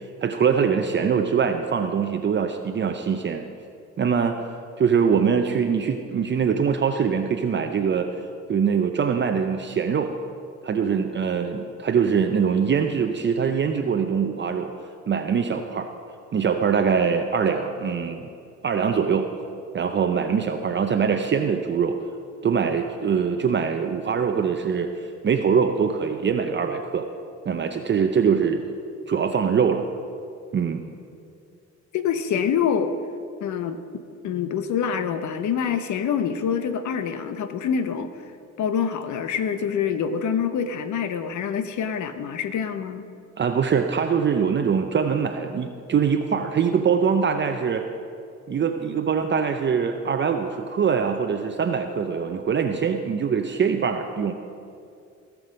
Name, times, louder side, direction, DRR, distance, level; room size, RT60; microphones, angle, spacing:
voice 1, 0.2-3.4 4.0-4.4 4.8-8.1 8.5-10.1 10.6-14.7 15.1-15.9 16.3-18.2 18.6-19.3 19.7-22.0 22.4-27.1 27.5-28.6 29.1-29.8 30.5-30.8 43.4-47.8 48.5-54.3, right 6 dB, 40° right, 5 dB, 0.6 m, -23 dB
voice 2, 31.9-32.9 33.4-33.8 34.2-38.1 38.6-43.1, left 7 dB, 70° left, 10 dB, 0.9 m, -26 dB
17.0 x 6.1 x 5.1 m, 2.5 s
cardioid pair, 90°, 30 cm